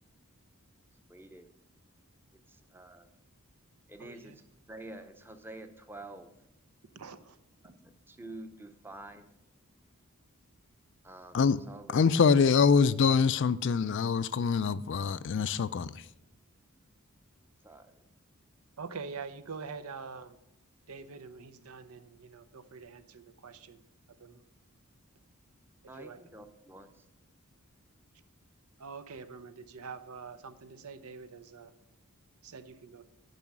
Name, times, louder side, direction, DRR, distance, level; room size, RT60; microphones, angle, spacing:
voice 1, 1.1-1.5 2.5-3.1 3.9-4.4 4.7-6.3 7.6-9.3 11.0-12.3 17.6-18.0 25.9-27.1, right 2 dB, 10° right, 0.7 m, -48 dB
voice 2, 4.0-4.4 6.9-7.4 7.6-7.7 18.8-20.4 20.9-23.8 24.1-24.4 26.0-26.2 28.8-31.7 32.4-33.0, right 5 dB, 80° right, 0.8 m, -45 dB
voice 3, 11.9-16.1, left 5 dB, 55° left, 0.4 m, -25 dB
11.0 x 5.6 x 7.3 m
head